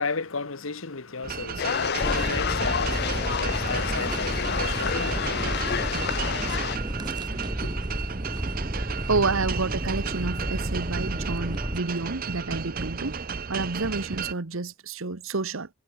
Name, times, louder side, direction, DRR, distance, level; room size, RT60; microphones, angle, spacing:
voice 1, 0.0-7.9, left 4 dB, 80° left, 1.4 m, -35 dB
sound 1, 1.2-14.3, right 5 dB, 45° right, 0.8 m, -34 dB
sound 2, 1.6-6.8, left 7 dB, 55° left, 0.5 m, -29 dB
sound 3, 2.0-11.8, right 1 dB, 20° right, 1.8 m, -31 dB
voice 2, 8.7-13.2 13.5-15.7, right 3 dB, 80° right, 1.2 m, -29 dB
head